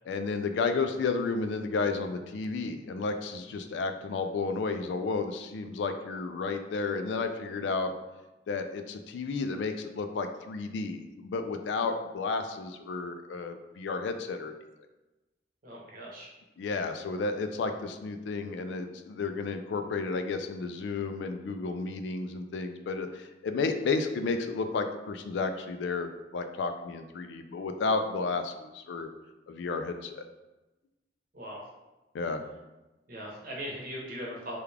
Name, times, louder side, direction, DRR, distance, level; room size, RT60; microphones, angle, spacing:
voice 1, 0.1-7.9 8.5-14.5 16.6-29.1 29.5-30.3 32.1-32.4, left 4 dB, 75° left, 7 dB, 0.3 m, -32 dB
voice 2, 15.6-16.3 31.3-31.6 33.1-34.6, equal, 50° right, -3 dB, 0.9 m, -39 dB
3.4 x 2.3 x 3.3 m, 1.0 s
head